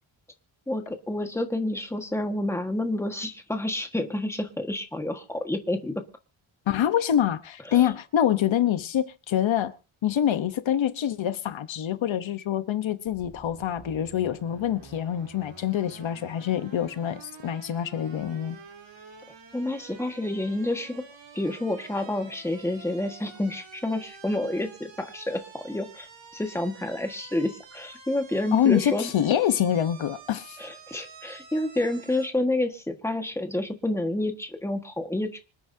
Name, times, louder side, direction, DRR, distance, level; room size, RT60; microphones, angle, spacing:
voice 1, 0.7-6.0 7.7-7.9 19.5-21.0 21.3-26.1 26.3-29.1 30.6-35.4, left 1 dB, 5° left, 1.5 m, -29 dB
voice 2, 6.7-9.7 10.0-18.6 28.5-30.6, left 10 dB, 70° left, 1.1 m, -25 dB
sound 1, 13.1-32.3, right 5 dB, 65° right, 3.6 m, -49 dB
26.0 x 9.3 x 2.8 m
wide cardioid pair, 165°, 48 cm